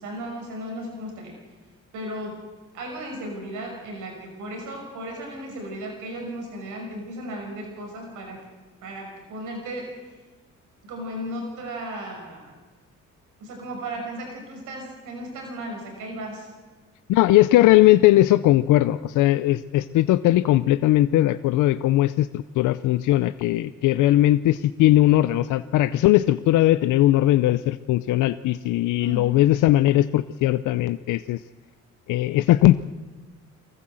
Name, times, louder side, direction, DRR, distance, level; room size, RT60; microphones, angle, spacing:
voice 1, 0.0-1.4 1.9-2.4 2.7-8.4 8.8-9.9 10.8-12.5 13.4-16.5 29.0-29.3, right 1 dB, 90° right, 1 dB, 5.7 m, -35 dB
voice 2, 17.1-31.4 32.1-32.8, left 15 dB, 85° left, 13 dB, 0.6 m, -19 dB
23.5 x 15.0 x 7.7 m, 1.3 s
cardioid pair, 90°, 30 cm